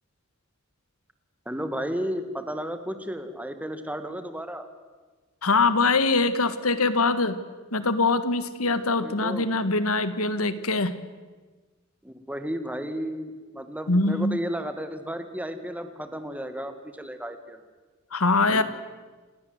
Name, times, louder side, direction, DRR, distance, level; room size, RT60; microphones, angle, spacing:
voice 1, 1.5-4.7 8.7-9.5 12.0-17.6 18.5-18.6, equal, 5° right, 9 dB, 2.0 m, -33 dB
voice 2, 5.4-7.4 7.7-10.9 13.9-14.4 18.1-18.6, left 3 dB, 75° left, 13 dB, 1.7 m, -23 dB
29.5 x 18.5 x 8.0 m, 1.3 s
head